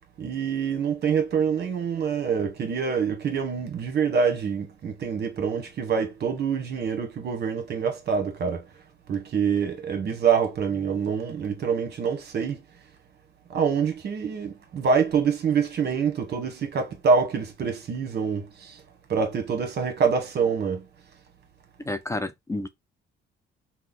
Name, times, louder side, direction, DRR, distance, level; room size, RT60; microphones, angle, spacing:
voice 1, 0.2-8.7 9.1-12.6 13.5-18.8 19.1-20.8, right 6 dB, 55° right, 1.0 m, -26 dB
voice 2, 21.9-22.7, left 2 dB, 15° left, 0.3 m, -30 dB
3.0 x 2.1 x 3.7 m
cardioid pair, 90°, 20 cm